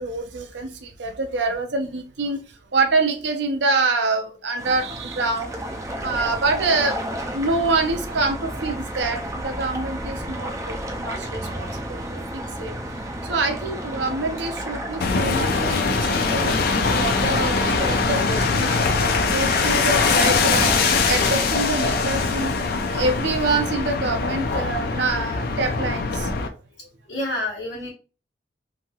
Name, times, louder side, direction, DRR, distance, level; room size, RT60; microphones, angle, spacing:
voice 1, 0.0-2.4 2.7-5.5 6.0-12.9 13.2-16.5 17.0-26.3, right 3 dB, 65° right, 0.5 m, -26 dB
sound 1, 4.6-20.8, right 1 dB, 15° right, 0.4 m, -32 dB
sound 2, 15.0-26.5, left 4 dB, 50° left, 0.4 m, -22 dB
voice 2, 27.1-27.9, left 1 dB, 70° left, 1.1 m, -29 dB
3.0 x 2.7 x 2.3 m
head